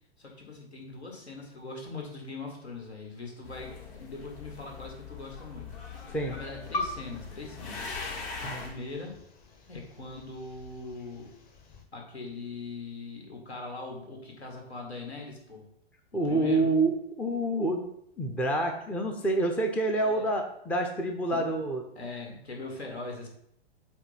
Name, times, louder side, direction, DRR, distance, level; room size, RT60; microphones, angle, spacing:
voice 1, 0.2-5.7 6.3-9.2 9.7-11.3 11.9-15.7 16.1-16.7 19.9-20.3 21.3-21.5 21.9-23.3, left 3 dB, 80° left, 0 dB, 2.2 m, -41 dB
sound 1, 3.4-8.7, left 4 dB, 55° left, 2.4 m, -41 dB
sound 2, 6.6-11.8, left 2 dB, 25° left, 1.0 m, -42 dB
voice 2, 16.1-17.8 18.2-21.8, right 2 dB, 5° left, 4 dB, 0.4 m, -27 dB
7.9 x 2.7 x 5.7 m, 0.73 s
figure-of-eight pair, 110°, 32 cm